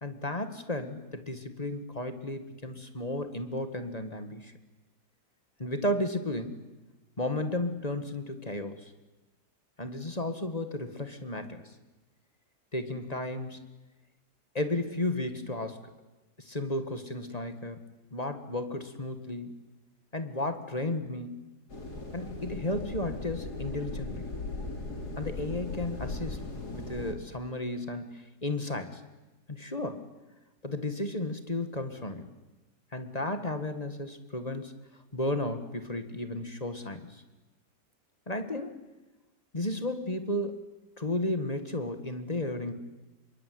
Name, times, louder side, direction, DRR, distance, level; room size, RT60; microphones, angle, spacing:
voice 1, 0.0-4.5 5.6-6.6 7.2-8.9 9.8-11.7 12.7-13.6 14.5-15.9 16.4-17.8 18.1-19.5 20.1-21.4 22.1-24.3 25.2-26.4 26.7-29.0 29.5-30.0 30.6-32.3 32.9-34.7 35.1-37.2 38.3-38.8 39.5-40.7 41.0-42.7, left 1 dB, 20° left, 8 dB, 1.9 m, -33 dB
sound 1, 21.7-27.1, left 2 dB, 65° left, 4.2 m, -38 dB
27.0 x 22.5 x 9.5 m, 1.1 s
omnidirectional pair, 1.9 m